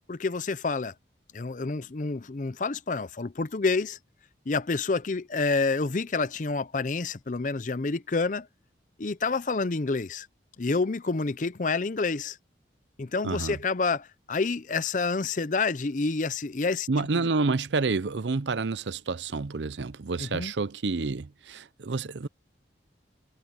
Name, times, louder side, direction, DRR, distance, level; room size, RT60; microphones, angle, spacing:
voice 1, 0.1-0.9 1.3-4.0 4.5-8.5 9.0-10.3 10.6-12.4 13.0-16.9 17.1-17.3 20.2-20.5, left 4 dB, 45° left, 0.6 m, -28 dB
voice 2, 13.2-13.6 16.9-22.3, right 3 dB, 90° right, 0.7 m, -29 dB
head